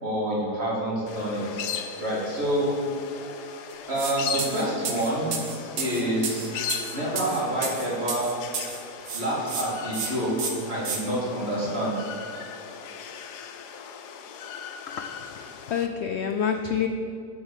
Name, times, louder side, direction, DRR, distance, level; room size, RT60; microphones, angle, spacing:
voice 1, 0.0-1.6 2.0-2.8 3.9-5.3 5.8-6.5 6.9-8.4 9.1-12.1, right 1 dB, 40° right, -6 dB, 3.0 m, -27 dB
sound 1, 1.1-15.9, left 8 dB, 90° left, 1.3 m, -38 dB
sound 2, 4.0-4.1 4.4-8.8 9.1-9.6 9.9-10.1 10.4-11.0, right 6 dB, 65° right, 1.6 m, -31 dB
voice 2, 14.9-16.9, left 8 dB, 70° left, 6 dB, 0.6 m, -28 dB
8.1 x 6.5 x 7.4 m, 2.6 s
omnidirectional pair, 1.7 m